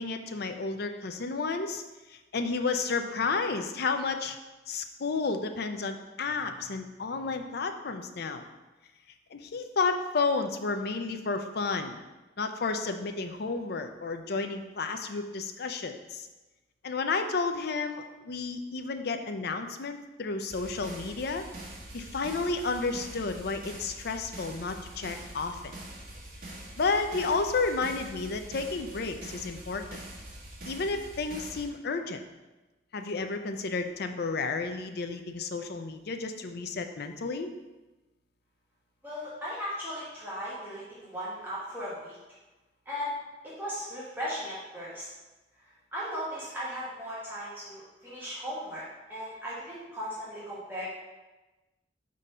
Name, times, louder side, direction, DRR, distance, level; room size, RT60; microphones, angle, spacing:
voice 1, 0.0-1.8 2.1-4.4 4.7-8.4 9.3-12.0 12.4-16.3 16.8-21.4 21.9-25.7 26.8-30.0 30.7-32.2 32.9-37.5, left 4 dB, 60° left, 7 dB, 0.5 m, -31 dB
sound 1, 20.5-31.7, right 1 dB, 55° right, 1.5 m, -44 dB
voice 2, 39.0-42.2 42.8-43.1 43.4-45.1 45.9-48.8 49.1-50.9, equal, 10° right, -9 dB, 1.4 m, -37 dB
4.8 x 3.8 x 5.5 m, 1.1 s
head